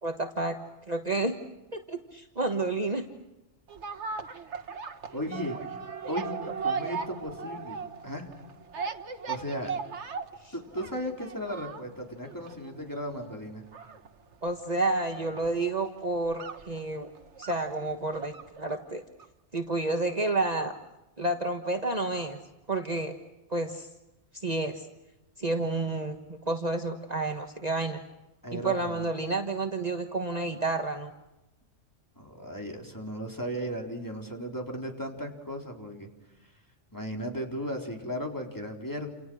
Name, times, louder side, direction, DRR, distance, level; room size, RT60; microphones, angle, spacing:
voice 1, 0.0-0.5 0.9-1.3 1.7-3.0 10.4-10.5 14.4-17.1 17.4-19.0 19.5-20.7 21.2-22.4 22.7-23.1 23.5-23.9 24.3-24.8 25.4-28.0 28.5-31.1, right 2 dB, 35° right, 4 dB, 1.5 m, -30 dB
sound 1, 3.7-18.9 19.2-19.3, right 5 dB, 70° right, 1.6 m, -38 dB
voice 2, 5.1-5.6 6.1-7.8 8.0-8.3 9.3-9.7 10.5-13.6 28.4-29.0 32.2-36.1 36.4-36.5 36.9-39.1, equal, 15° left, 1 dB, 4.1 m, -36 dB
29.0 x 28.5 x 6.4 m, 0.99 s
omnidirectional pair, 1.2 m